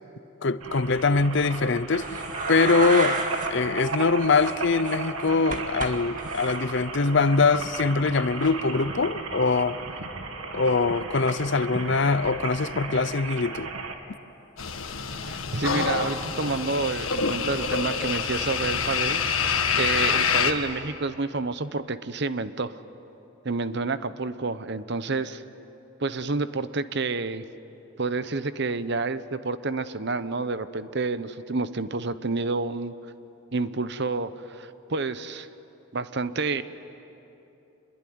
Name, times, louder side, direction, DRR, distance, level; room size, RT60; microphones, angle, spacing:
voice 1, 0.4-2.2 2.5-3.2 3.5-9.8 10.5-13.7, left 4 dB, 55° left, 15 dB, 0.7 m, -23 dB
sound 1, 0.6-14.0, right 3 dB, 85° right, 2.2 m, -35 dB
sound 2, 1.9-3.5 3.7-3.9 4.3-5.9 6.2-6.6 8.4-8.5, right 3 dB, 40° right, 2.1 m, -31 dB
sound 3, 14.6-20.5, left 5 dB, 80° left, 1.6 m, -26 dB
voice 2, 15.2-22.8 23.4-25.4 26.0-27.4 28.0-32.9 33.5-35.5 35.9-36.6, right 3 dB, 55° right, 13 dB, 0.9 m, -29 dB
26.0 x 21.5 x 9.5 m, 2.9 s
head